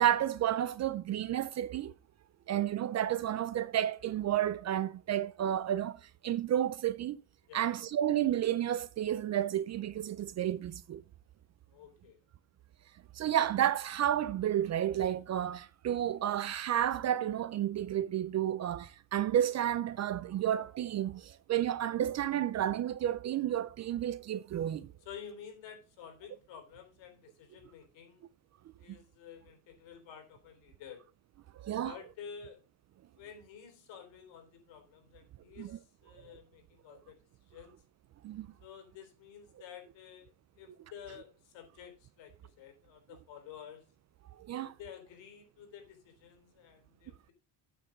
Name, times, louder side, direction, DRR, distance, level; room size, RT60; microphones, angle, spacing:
voice 1, 0.0-1.9 2.5-7.2 7.5-11.0 13.1-24.9 31.6-32.0 35.6-35.8 38.2-38.5 44.4-44.7, right 11 dB, 40° right, 0.4 m, -31 dB
voice 2, 11.7-12.2 25.0-28.3 28.8-31.0 31.8-32.6 33.2-37.8 38.6-43.8 44.6-47.3, left 8 dB, 70° left, 3.8 m, -51 dB
8.9 x 6.9 x 5.0 m
cardioid pair, 155°, 46 cm